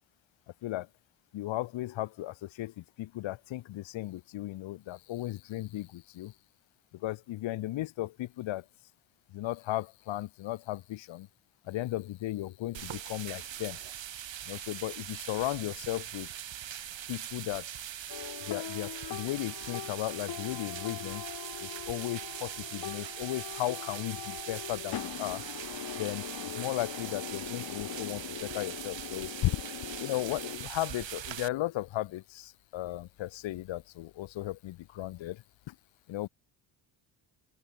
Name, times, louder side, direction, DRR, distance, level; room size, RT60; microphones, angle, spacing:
voice 1, 1.3-6.3 7.0-8.6 9.3-11.3 11.7-13.8 14.5-16.3 17.1-17.6 18.5-21.2 21.6-25.4 26.0-26.3 26.6-29.6 30.0-35.7 36.1-36.3, left 15 dB, 75° left, 1.0 m, -35 dB
sound 1, 12.7-31.5, right 10 dB, 70° right, 7.5 m, -42 dB
sound 2, 18.1-30.6, left 10 dB, 50° left, 1.3 m, -42 dB
open air
cardioid pair, 85°, 47 cm